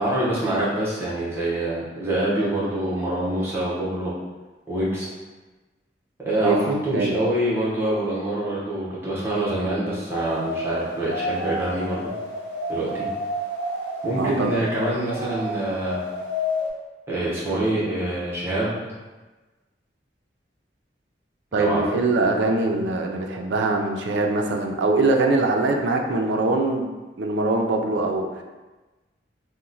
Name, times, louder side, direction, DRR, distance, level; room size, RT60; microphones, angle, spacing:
voice 1, 0.0-4.1 4.7-5.1 6.2-12.1 12.7-13.1 14.0-16.0 17.1-18.9 21.6-21.8, right 1 dB, 15° right, -8 dB, 0.8 m, -25 dB
voice 2, 6.4-7.1 14.2-14.5 21.5-26.9 27.2-28.4, right 2 dB, 80° right, 3 dB, 0.4 m, -22 dB
sound 1, 10.1-16.7, left 1 dB, 70° left, 0.8 m, -30 dB
2.9 x 2.1 x 3.8 m, 1.2 s
head